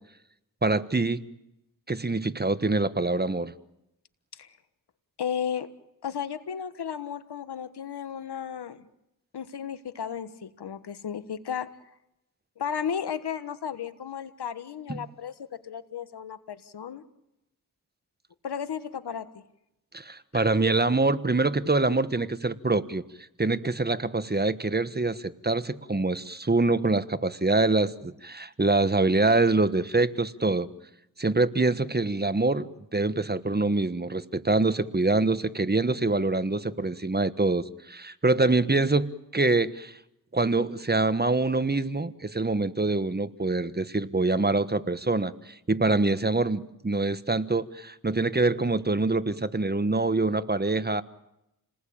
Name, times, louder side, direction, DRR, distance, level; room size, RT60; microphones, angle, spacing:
voice 1, 0.6-1.2 1.9-3.5 14.9-15.0 19.9-23.0 23.4-30.7 31.2-40.0 40.3-51.0, right 3 dB, 25° right, 13 dB, 1.3 m, -25 dB
voice 2, 5.2-5.7 6.0-8.9 9.3-11.7 12.6-15.3 15.6-17.0 18.4-19.3 20.3-20.5, left 8 dB, 90° left, 12 dB, 1.5 m, -34 dB
29.0 x 20.0 x 8.8 m, 0.86 s
cardioid pair, 55°, 38 cm